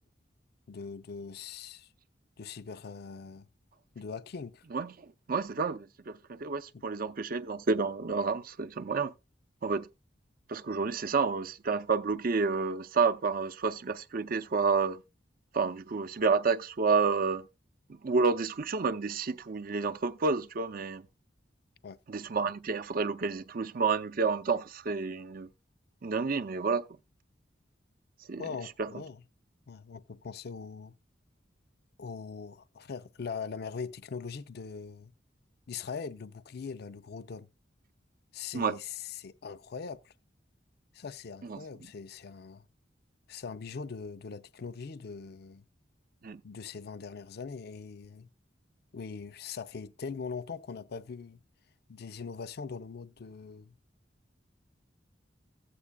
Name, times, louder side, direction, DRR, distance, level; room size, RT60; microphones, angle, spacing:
voice 1, 0.7-1.9 2.4-3.5 3.9-4.6 6.7-6.8 21.8-22.0 28.4-29.2 29.7-30.9 32.0-35.1 35.7-37.5 38.3-40.1 40.9-42.6 43.3-45.6 46.4-48.3 48.9-51.4 51.9-53.7, left 5 dB, 60° left, 0.5 m, -41 dB
voice 2, 4.7-9.1 9.6-9.9 10.5-15.0 15.5-17.5 18.0-21.1 22.1-25.5 26.0-26.9 28.3-28.4 28.8-28.9 38.5-38.8 41.5-41.6 46.2-46.4, right 4 dB, 50° right, 0.6 m, -30 dB
15.0 x 8.4 x 2.2 m
head